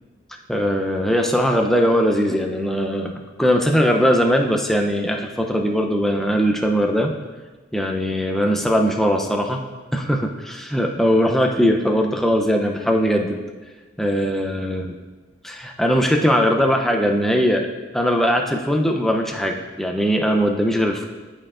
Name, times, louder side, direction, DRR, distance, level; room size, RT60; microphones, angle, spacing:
voice 1, 0.5-3.1 3.4-7.1 7.7-9.6 9.9-13.4 14.0-15.0 15.4-17.7 17.9-21.1, equal, ahead, 2 dB, 0.4 m, -20 dB
11.0 x 5.0 x 2.4 m, 1.3 s
head